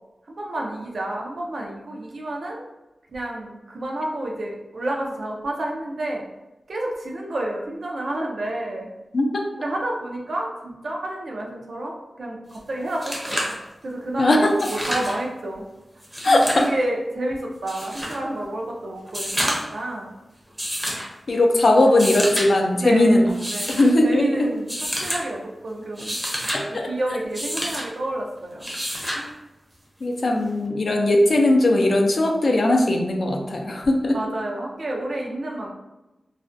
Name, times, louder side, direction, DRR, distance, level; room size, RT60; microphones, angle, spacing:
voice 1, 0.3-2.6 3.1-6.2 6.7-8.9 9.6-12.4 12.7-13.5 13.8-15.7 16.3-20.1 22.7-23.2 23.5-26.2 26.7-28.7 29.1-29.4 34.1-35.7, right 1 dB, 65° right, -1 dB, 0.5 m, -30 dB
voice 2, 9.1-9.4 14.2-14.5 16.2-16.6 21.3-23.3 23.7-24.2 26.5-26.9 30.0-34.2, left 1 dB, 60° left, 2 dB, 0.3 m, -19 dB
sound 1, 12.5-12.6 12.9-13.6 14.5-15.2 16.0-16.7 17.7-18.2 19.1-19.8 20.6-21.1 21.9-22.5 23.3-23.9 24.7-25.2 25.8-26.6 27.3-27.9 28.6-29.2 30.6-30.7, equal, 10° right, 0.6 m, -28 dB
2.4 x 2.1 x 2.5 m, 1.0 s
wide cardioid pair, 90°, 0 cm